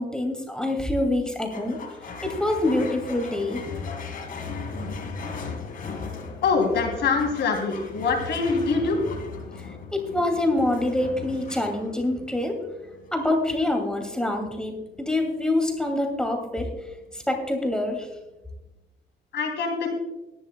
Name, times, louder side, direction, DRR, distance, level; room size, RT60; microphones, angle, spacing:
voice 1, 0.0-1.8 2.2-3.6 9.9-12.6 13.1-16.7 17.1-18.1, left 1 dB, 5° left, 3 dB, 2.4 m, -25 dB
sound 1, 1.5-18.2, left 4 dB, 50° left, 2.3 m, -38 dB
voice 2, 6.4-9.0 19.3-19.9, left 4 dB, 75° left, 2 dB, 3.1 m, -24 dB
19.5 x 11.0 x 2.3 m, 1.0 s
cardioid pair, 125°, 18 cm